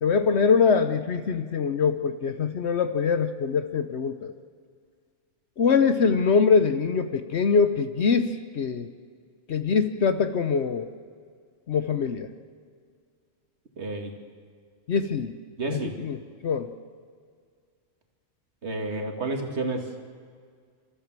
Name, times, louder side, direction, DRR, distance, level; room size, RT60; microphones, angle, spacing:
voice 1, 0.0-4.3 5.6-8.9 9.5-10.9 11.7-12.3 14.9-15.4 15.7-16.2 16.4-16.7, left 5 dB, 60° left, 10 dB, 1.1 m, -23 dB
voice 2, 13.8-14.2 15.6-16.0 18.6-19.9, right 2 dB, 55° right, 3 dB, 2.4 m, -30 dB
29.0 x 14.0 x 7.5 m, 2.1 s
omnidirectional pair, 1.3 m